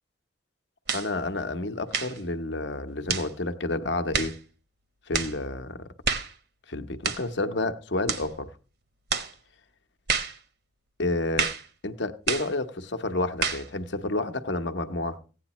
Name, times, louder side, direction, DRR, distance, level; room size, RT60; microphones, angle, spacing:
voice 1, 0.9-4.3 5.1-5.9 6.7-8.5 11.0-11.5 11.8-15.2, left 2 dB, 65° left, 1.0 m, -30 dB
sound 1, 0.9-1.1 1.9-2.2 3.1-3.3 4.1-4.4 5.1-5.4 6.0-6.3 7.0-7.3 8.1-8.3 9.1-9.3 10.1-10.4 11.4-11.7 12.3-12.5 13.4-13.7, right 6 dB, 55° right, 1.1 m, -28 dB
16.0 x 9.3 x 3.0 m
head